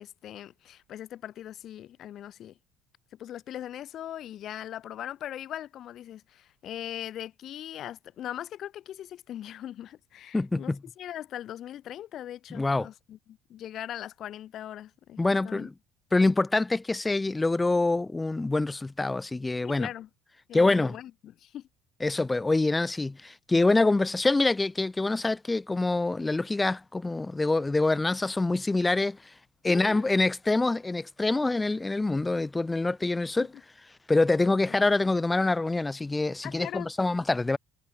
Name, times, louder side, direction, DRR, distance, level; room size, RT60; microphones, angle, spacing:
voice 1, 0.0-2.6 3.2-13.2 13.5-15.2 15.4-15.7 19.6-20.1 20.5-21.7 29.6-30.0 33.4-33.5 34.4-34.5 36.4-36.9, left 11 dB, 50° left, 2.6 m, -40 dB
voice 2, 10.3-10.8 12.5-12.9 15.2-15.7 16.1-19.9 20.5-21.0 22.0-29.2 29.6-33.5 34.1-37.6, left 2 dB, 15° left, 0.5 m, -25 dB
figure-of-eight pair, 60°, 0 cm